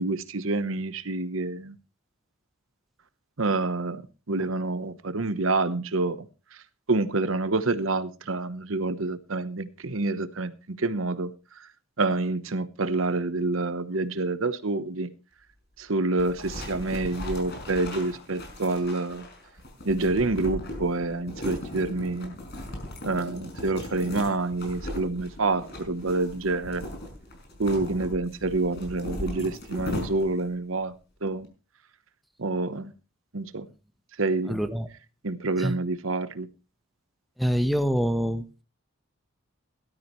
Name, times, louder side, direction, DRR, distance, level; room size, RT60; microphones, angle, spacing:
voice 1, 0.0-1.8 3.4-6.3 6.9-11.3 11.6-11.7 12.0-15.1 15.8-19.2 19.8-22.3 23.0-26.8 27.6-30.9 31.2-31.5 32.4-32.9 33.3-33.7 34.2-34.6 35.2-36.5, right 3 dB, 65° right, 1.0 m, -27 dB
sound 1, 16.2-30.5, left 1 dB, 55° left, 5.4 m, -38 dB
voice 2, 34.5-34.9 35.6-35.8 37.4-38.4, equal, ahead, 1.1 m, -25 dB
18.0 x 12.5 x 3.1 m
head